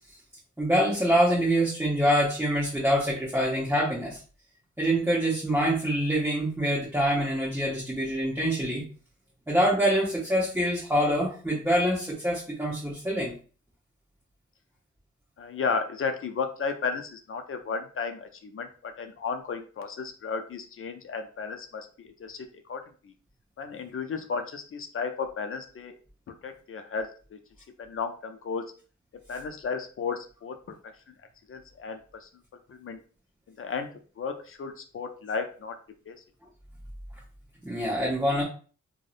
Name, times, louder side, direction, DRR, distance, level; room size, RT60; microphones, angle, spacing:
voice 1, 0.6-4.2 4.8-8.8 9.5-13.3 37.6-38.4, equal, 5° right, -6 dB, 0.8 m, -25 dB
voice 2, 15.4-23.1 23.6-26.0 26.4-27.4 27.8-28.6 29.3-30.6 31.1-31.2 31.5-32.3 32.7-33.0 33.6-35.8 36.1-36.2, left 5 dB, 45° left, 6 dB, 0.4 m, -34 dB
2.6 x 2.1 x 2.4 m, 0.38 s
cardioid pair, 60°, 30 cm